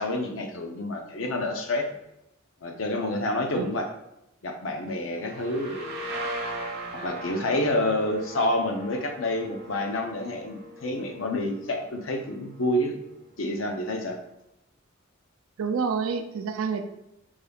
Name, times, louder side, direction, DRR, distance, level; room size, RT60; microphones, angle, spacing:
voice 1, 0.0-1.9 2.6-3.9 4.4-6.0 6.9-13.0 13.4-14.2, left 1 dB, 70° left, 4 dB, 0.6 m, -28 dB
sound 1, 5.2-12.8, right 1 dB, 55° right, 0.7 m, -39 dB
voice 2, 15.6-16.8, right 5 dB, 80° right, 6 dB, 0.4 m, -28 dB
5.4 x 2.3 x 3.3 m, 0.86 s
head